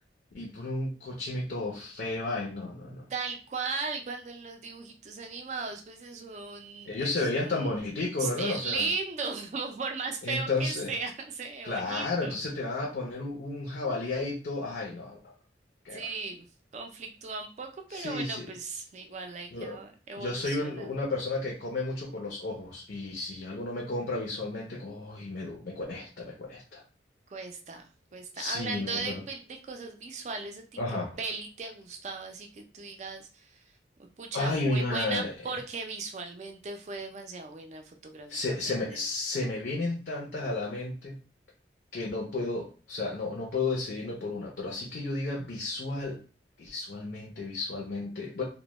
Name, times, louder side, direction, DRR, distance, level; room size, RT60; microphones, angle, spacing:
voice 1, 0.3-3.1 6.9-8.9 10.2-10.9 11.6-15.2 15.8-16.1 17.9-18.5 19.5-19.8 20.2-26.8 28.3-29.2 30.8-31.1 34.3-35.3 38.3-41.1 41.9-46.2 46.6-48.4, left 2 dB, 60° left, -2 dB, 0.5 m, -32 dB
voice 2, 3.1-7.8 8.2-12.4 15.9-16.5 16.7-20.9 27.3-30.7 31.2-33.6 34.2-38.6 38.9-39.0, right 4 dB, 40° right, 4 dB, 0.3 m, -37 dB
2.1 x 2.1 x 2.9 m, 0.37 s
head